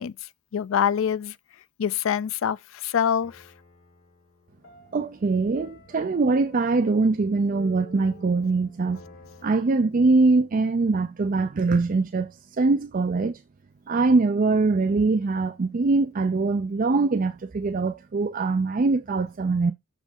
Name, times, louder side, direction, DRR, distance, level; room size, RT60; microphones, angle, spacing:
voice 1, 0.0-1.4 1.8-3.5, left 8 dB, 70° left, 0.4 m, -25 dB
sound 1, 2.1-2.4 3.2-9.5, left 3 dB, 85° left, 2.4 m, -50 dB
voice 2, 4.9-9.0 9.4-13.4 13.9-19.7, right 3 dB, 40° right, 0.4 m, -23 dB
6.5 x 5.1 x 3.6 m
head